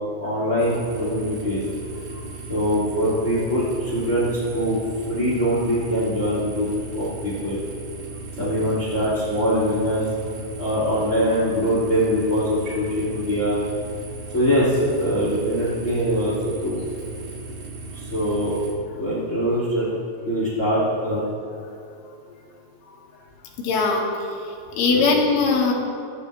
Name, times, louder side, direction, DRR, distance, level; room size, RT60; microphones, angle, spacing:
voice 1, 0.2-1.6 2.5-4.8 5.1-6.7 6.9-7.6 8.4-10.1 10.6-13.6 14.3-16.8 17.9-18.6 18.9-19.9 20.2-21.2 24.9-25.0, equal, 25° left, -7 dB, 1.5 m, -23 dB
sound 1, 0.6-18.7, right 3 dB, 55° right, 3.5 m, -37 dB
voice 2, 23.6-24.1 24.5-25.7, left 4 dB, 80° left, -2 dB, 4.4 m, -21 dB
27.5 x 11.5 x 3.3 m, 2.5 s
omnidirectional pair, 5.7 m